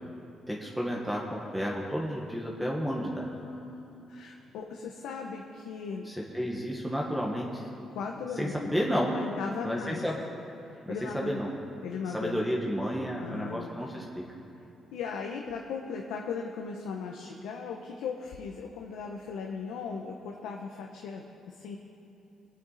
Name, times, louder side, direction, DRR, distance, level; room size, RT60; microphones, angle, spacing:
voice 1, 0.5-3.3 6.0-7.7 8.4-9.1 9.6-10.2 10.9-11.5 12.1-14.2, equal, ahead, -2 dB, 1.6 m, -31 dB
voice 2, 2.8-6.0 7.9-10.0 10.6-11.4 11.8-12.4 13.2-13.7 14.9-21.8, left 5 dB, 90° left, 1 dB, 1.0 m, -38 dB
22.5 x 8.7 x 4.1 m, 2.9 s
cardioid pair, 90°, 0 cm